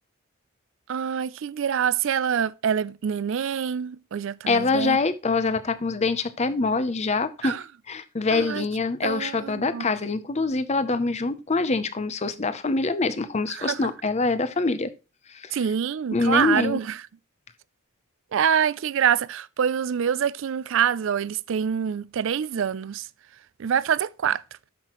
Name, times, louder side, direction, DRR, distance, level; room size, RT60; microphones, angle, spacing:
voice 1, 0.9-5.0 7.4-7.6 8.3-8.7 9.0-9.8 13.6-13.8 15.5-16.9 18.3-23.0 23.6-24.4, right 8 dB, 60° right, 0.4 m, -25 dB
voice 2, 4.5-7.6 7.9-14.9 15.3-15.7 16.1-16.8, left 3 dB, 30° left, 0.6 m, -25 dB
13.0 x 5.8 x 3.0 m
head